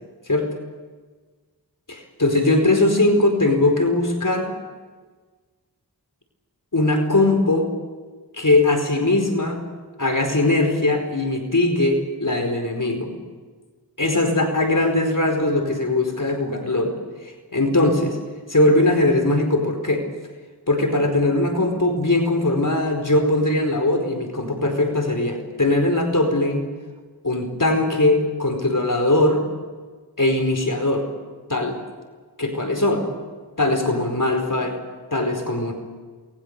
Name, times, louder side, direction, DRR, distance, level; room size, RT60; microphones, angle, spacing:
voice 1, 1.9-4.5 6.7-7.7 8.3-9.6 10.0-13.1 14.0-17.0 17.2-18.2 18.5-20.1 20.7-26.6 27.2-29.4 30.2-31.1 31.5-31.8 32.4-33.1 33.6-34.8 35.1-35.7, left 2 dB, 55° left, 4 dB, 4.8 m, -20 dB
28.0 x 21.0 x 6.8 m, 1.4 s
wide cardioid pair, 40°, 38 cm